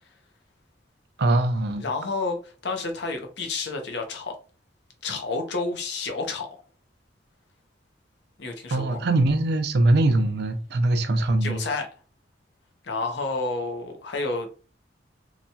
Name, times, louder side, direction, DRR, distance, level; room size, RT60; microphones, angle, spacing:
voice 1, 1.2-1.8 8.7-11.6, right 2 dB, 60° right, 0.5 m, -22 dB
voice 2, 1.8-4.3 5.0-6.5 8.4-9.1 11.4-11.9 12.8-14.5, left 3 dB, 65° left, 0.7 m, -30 dB
2.9 x 2.2 x 2.7 m
head